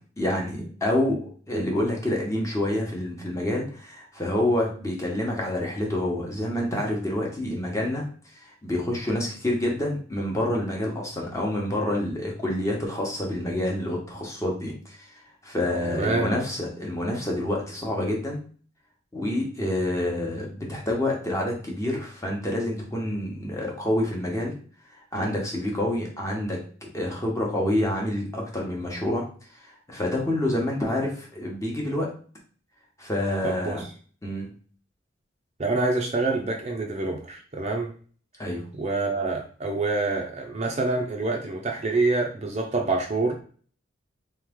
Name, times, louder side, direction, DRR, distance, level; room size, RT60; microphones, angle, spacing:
voice 1, 0.2-8.0 8.4-15.0 15.4-18.4 19.1-24.5 25.1-26.6 26.9-29.2 29.6-32.1 33.0-33.8 34.2-34.5 38.4-38.6, left 1 dB, 15° left, -1 dB, 1.0 m, -27 dB
voice 2, 15.9-16.4 33.4-33.9 35.6-37.9 38.8-43.4, right 3 dB, 35° right, 2 dB, 0.6 m, -26 dB
3.4 x 3.2 x 3.6 m, 0.43 s
head